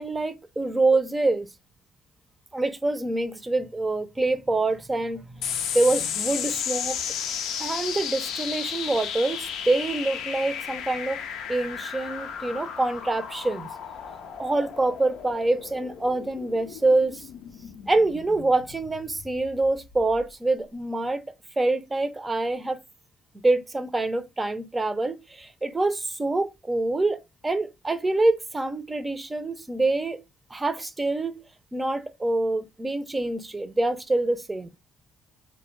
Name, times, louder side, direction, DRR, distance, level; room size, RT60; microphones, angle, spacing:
voice 1, 0.0-1.5 2.5-7.0 7.6-11.2 11.5-13.7 14.4-17.2 17.9-21.2 21.6-22.8 23.4-30.2 30.5-31.4 31.7-34.7, right 2 dB, 20° right, 0.5 m, -26 dB
sound 1, 5.4-20.2, left 8 dB, 80° left, 0.4 m, -34 dB
2.1 x 2.1 x 3.1 m
supercardioid pair, 70°, 0 cm